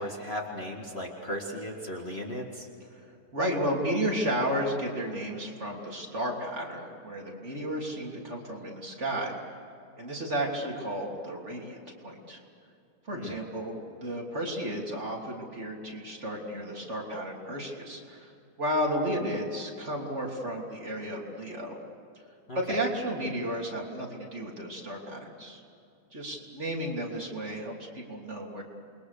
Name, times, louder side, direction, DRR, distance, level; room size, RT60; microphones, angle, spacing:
voice 1, 0.0-2.7 13.1-13.3 22.5-22.8, equal, 30° left, 0 dB, 2.1 m, -36 dB
voice 2, 3.3-9.3 10.0-12.4 13.0-18.3 18.6-21.7 22.5-25.6 26.1-28.6, equal, 35° right, -1 dB, 3.4 m, -33 dB
28.0 x 22.0 x 6.8 m, 2.7 s
omnidirectional pair, 2.2 m